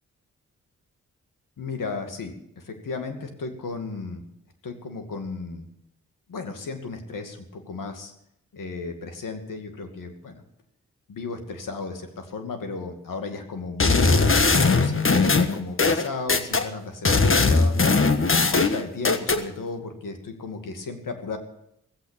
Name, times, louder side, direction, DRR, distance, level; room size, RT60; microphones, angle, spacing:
voice 1, 1.6-4.2 4.6-5.6 6.3-8.1 8.5-10.3 11.1-14.3 14.7-17.7 18.3-21.4, left 4 dB, 75° left, 6 dB, 2.4 m, -34 dB
sound 1, 13.8-16.7 17.1-19.4, left 3 dB, 40° left, 1.5 m, -19 dB
17.0 x 8.2 x 8.8 m, 0.78 s
supercardioid pair, 45°, 33 cm